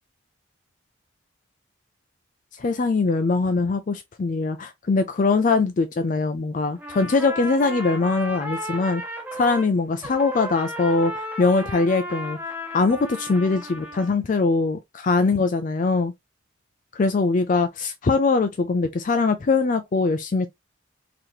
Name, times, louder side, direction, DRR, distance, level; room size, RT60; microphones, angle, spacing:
voice 1, 2.5-9.0 9.3-12.4 12.7-16.1 16.9-20.5, left 3 dB, 40° left, 0.4 m, -22 dB
Trumpet, 6.8-9.7 10.0-14.1, equal, 10° right, 0.7 m, -34 dB
4.0 x 2.8 x 3.0 m
head